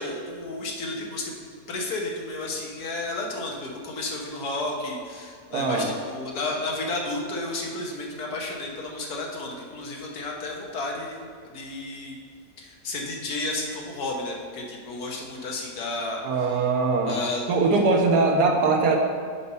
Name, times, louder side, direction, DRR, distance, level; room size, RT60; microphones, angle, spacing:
voice 1, 0.0-12.2 12.6-16.6 17.1-17.5, left 2 dB, 75° left, -1 dB, 1.6 m, -32 dB
voice 2, 5.5-5.9 16.2-17.2 17.5-19.0, right 3 dB, 85° right, 2 dB, 1.5 m, -21 dB
5.8 x 5.2 x 5.4 m, 2.1 s
omnidirectional pair, 1.7 m